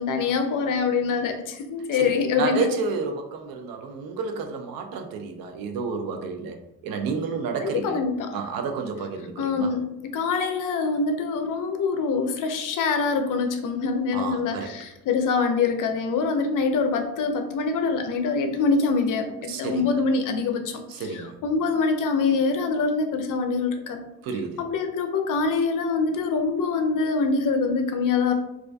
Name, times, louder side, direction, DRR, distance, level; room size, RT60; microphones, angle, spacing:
voice 1, 0.0-2.7 7.6-8.4 9.4-24.0 24.6-28.3, left 4 dB, 65° left, 6 dB, 0.5 m, -25 dB
voice 2, 1.9-8.0 8.3-9.7 14.1-14.7 19.5-19.8 20.9-21.4 24.2-24.6, right 5 dB, 80° right, 5 dB, 0.5 m, -30 dB
2.4 x 2.2 x 2.5 m, 0.87 s
cardioid pair, 65°, 34 cm